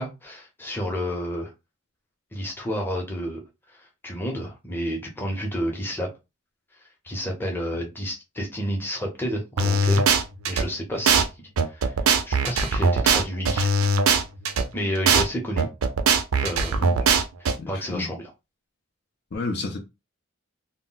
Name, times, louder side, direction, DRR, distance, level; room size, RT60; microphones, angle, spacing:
voice 1, 0.0-1.5 2.3-3.4 3.7-6.1 7.0-10.1 10.5-11.3 11.6-11.9 12.2-13.7 14.7-15.7 16.4-16.8 17.4-18.3, equal, 10° left, 0.7 m, -30 dB
sound 1, 9.6-10.6 11.1-11.2 11.6-14.6 15.1-15.2 15.6-17.5, right 4 dB, 90° right, 0.5 m, -20 dB
voice 2, 17.6-18.1 19.3-19.8, left 3 dB, 50° left, 0.4 m, -31 dB
2.2 x 2.1 x 3.8 m
head